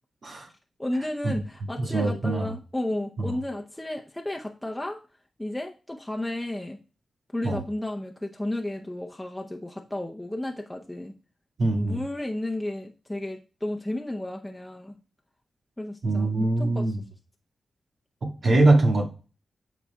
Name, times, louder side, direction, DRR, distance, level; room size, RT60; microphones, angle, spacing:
voice 1, 0.8-5.0 5.4-6.8 7.3-11.1 11.7-15.0 15.8-17.0, left 1 dB, 10° left, 0.7 m, -33 dB
voice 2, 1.8-2.5 3.2-3.3 7.4-7.6 11.6-12.0 16.0-17.0 18.2-19.0, right 2 dB, 65° right, 1.8 m, -23 dB
11.5 x 4.1 x 2.3 m
cardioid pair, 55°, 0 cm